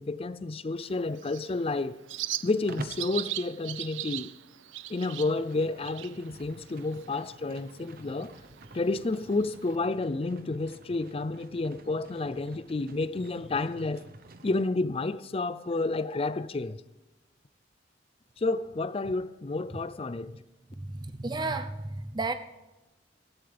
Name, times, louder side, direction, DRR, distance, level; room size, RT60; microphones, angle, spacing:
voice 1, 0.0-2.0 2.4-4.3 4.9-8.3 8.7-14.0 14.4-16.8 18.4-20.4, left 3 dB, 30° left, 0.4 m, -30 dB
Bird, 0.8-9.8, right 14 dB, 90° right, 0.6 m, -41 dB
Livestock farm animals working animals, 2.7-3.1 4.9-14.7, right 2 dB, 50° right, 1.1 m, -48 dB
voice 2, 20.7-22.3, right 3 dB, 25° right, 0.7 m, -33 dB
19.0 x 14.5 x 3.5 m
head